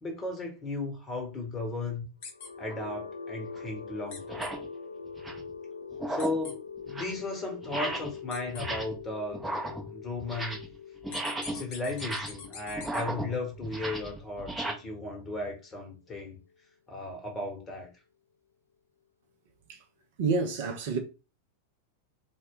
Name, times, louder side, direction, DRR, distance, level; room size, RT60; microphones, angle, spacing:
voice 1, 0.0-2.1 2.6-4.4 6.1-9.5 9.9-10.6 11.5-16.4 16.9-17.9, left 2 dB, 20° left, 1.1 m, -35 dB
sound 1, 2.2-16.1, left 5 dB, 80° left, 0.3 m, -44 dB
sound 2, 2.2-2.5 4.1-4.5 6.2-6.5 8.3-8.6 11.1-13.0, left 4 dB, 50° left, 0.7 m, -43 dB
sound 3, 2.6-2.8 3.6-3.7 4.2-4.7 5.1-5.5 5.9-6.5 6.8-7.2 7.6-8.2 8.5-9.0 9.3-10.8 11.0-14.7, right 1 dB, 5° right, 0.6 m, -36 dB
voice 2, 20.2-21.0, right 4 dB, 50° right, 0.6 m, -28 dB
2.2 x 2.2 x 3.6 m
figure-of-eight pair, 90°, 0 cm